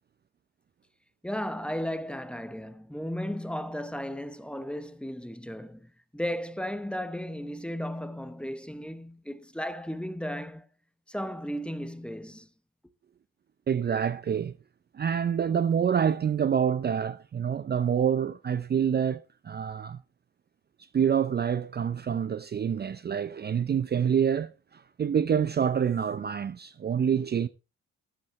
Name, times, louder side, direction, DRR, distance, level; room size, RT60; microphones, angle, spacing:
voice 1, 1.2-10.7 11.1-12.5, equal, 5° left, 1.0 m, -35 dB
voice 2, 13.7-14.6 14.9-20.0 20.9-27.5, right 8 dB, 35° right, 0.5 m, -27 dB
13.0 x 10.5 x 3.2 m
cardioid pair, 90°, 30 cm